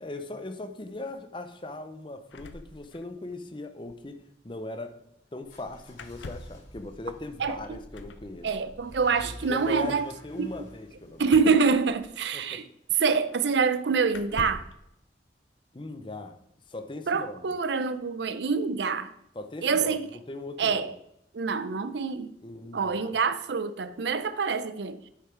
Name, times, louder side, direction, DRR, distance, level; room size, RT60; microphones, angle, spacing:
voice 1, 0.0-5.0 5.3-8.7 9.2-11.3 12.3-12.6 15.7-16.4 16.7-17.5 19.3-20.0 20.3-20.9 22.4-23.1, left 2 dB, 25° left, 0.6 m, -39 dB
sound 1, 2.3-3.4 3.6-3.7 3.9-4.1 5.9-6.7 7.9-8.3 11.2-12.4 13.3-13.4 14.1-14.8, left 3 dB, 85° left, 0.6 m, -43 dB
sound 2, 5.4-12.3, equal, 50° left, 3.2 m, -49 dB
voice 2, 7.4-7.8 8.4-10.1 10.4-10.5 11.2-12.6 13.0-14.6 17.1-19.1 19.6-20.1 20.6-20.9 21.3-22.3 22.7-25.1, right 5 dB, 75° right, 0.5 m, -26 dB
8.4 x 5.6 x 4.5 m
head